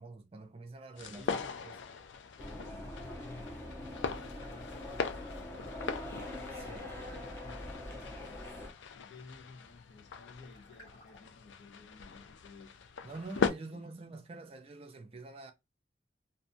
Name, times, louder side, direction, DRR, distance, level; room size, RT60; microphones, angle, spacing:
voice 1, 0.0-1.3 1.6-1.8 6.5-6.9 13.0-15.5, right 3 dB, 30° right, 0.4 m, -46 dB
sound 1, 1.0-13.5, left 5 dB, 85° left, 0.4 m, -40 dB
voice 2, 1.1-1.6 2.3-4.2 9.0-12.7 13.7-14.1, left 3 dB, 70° left, 0.8 m, -54 dB
sound 2, 2.4-8.7, left 1 dB, 15° left, 0.6 m, -43 dB
sound 3, 4.0-5.1 5.5-11.5, left 1 dB, 55° left, 1.2 m, -64 dB
2.6 x 2.3 x 2.6 m
head